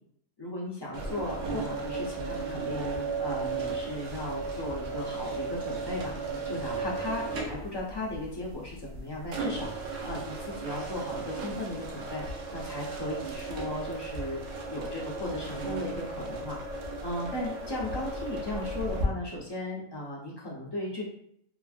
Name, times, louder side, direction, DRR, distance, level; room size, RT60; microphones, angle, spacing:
voice 1, 0.4-6.1 6.4-12.2 12.5-21.0, left 1 dB, 40° left, -5 dB, 0.3 m, -36 dB
sound 1, 0.9-19.1, right 3 dB, 75° right, 0.9 m, -35 dB
2.9 x 2.5 x 2.4 m, 0.69 s
omnidirectional pair, 1.3 m